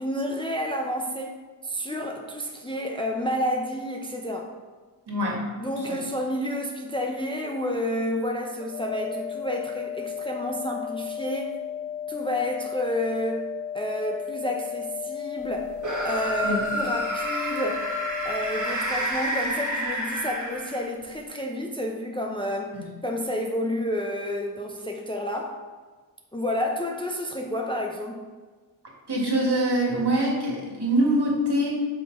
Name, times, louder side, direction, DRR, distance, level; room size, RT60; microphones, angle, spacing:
voice 1, 0.0-4.5 5.6-11.5 12.1-13.5 13.7-15.7 16.0-17.9 18.2-22.7 23.0-25.6 26.3-28.2, left 1 dB, 10° left, 1 dB, 0.5 m, -30 dB
voice 2, 5.1-5.4 5.9-6.0 16.4-16.6 22.7-22.8 29.1-31.7, right 1 dB, 60° right, -2 dB, 1.9 m, -24 dB
sound 1, 8.6-18.6, left 9 dB, 10° right, 1.7 m, -34 dB
sound 2, 15.8-21.0, right 1 dB, 40° right, 1.5 m, -29 dB
5.8 x 5.1 x 4.7 m, 1.4 s
wide cardioid pair, 110°, 45 cm